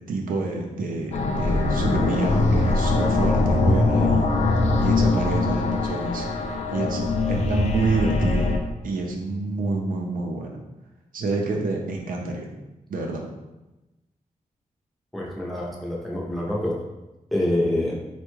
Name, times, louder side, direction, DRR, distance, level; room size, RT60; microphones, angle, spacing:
voice 1, 0.1-4.3 4.8-7.0 7.3-8.5 8.8-10.6 11.1-12.5 12.9-13.3, right 3 dB, 85° right, 1 dB, 0.5 m, -27 dB
sound 1, 1.1-8.6, left 3 dB, 55° left, 0.4 m, -22 dB
voice 2, 15.1-16.8 17.3-17.9, left 1 dB, ahead, -4 dB, 0.6 m, -26 dB
3.4 x 2.2 x 3.0 m, 1.0 s
wide cardioid pair, 140°, 14 cm